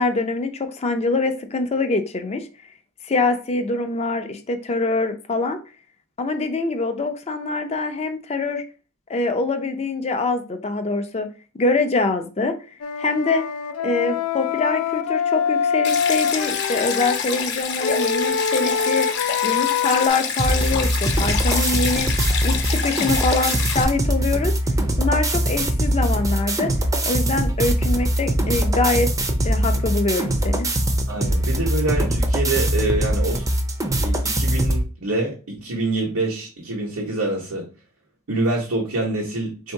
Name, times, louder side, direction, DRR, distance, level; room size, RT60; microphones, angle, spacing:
voice 1, 0.0-2.5 3.0-5.6 6.2-8.6 9.1-11.3 11.6-12.5 13.0-13.4 13.8-19.1 19.4-22.1 22.4-24.5 25.0-26.7 27.0-29.1 29.4-30.7, left 3 dB, 30° left, 7 dB, 0.5 m, -24 dB
Wind instrument woodwind instrument, 12.8-17.2 17.8-20.1, left 7 dB, 90° left, 0.4 m, -24 dB
Stream, 15.8-23.8, left 6 dB, 55° left, 0.8 m, -27 dB
sound 1, 20.4-34.8, right 1 dB, 15° right, 0.5 m, -22 dB
voice 2, 31.1-33.4 34.0-37.7 38.3-39.7, right 2 dB, 85° right, -3 dB, 1.1 m, -26 dB
3.5 x 2.7 x 4.6 m, 0.35 s
head